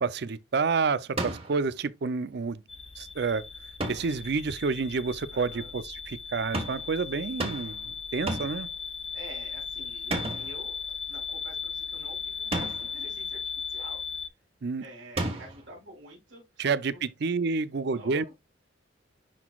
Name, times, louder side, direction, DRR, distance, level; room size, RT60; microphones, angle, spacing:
voice 1, 0.0-2.6 3.0-3.4 3.9-7.8 8.1-8.7 14.6-14.9 16.6-18.3, right 4 dB, 55° right, 0.5 m, -29 dB
sound 1, 1.2-1.6 3.8-4.2 6.5-6.9 7.4-7.8 8.3-8.7 10.1-10.6 12.5-13.0 15.2-15.7, right 2 dB, 30° right, 1.4 m, -32 dB
sound 2, 2.7-14.3, left 6 dB, 30° left, 0.9 m, -37 dB
voice 2, 5.3-5.7 9.1-10.8 11.0-13.4 13.7-14.0 14.8-17.0 17.9-18.4, right 1 dB, 70° right, 3.2 m, -48 dB
10.5 x 3.9 x 2.3 m
head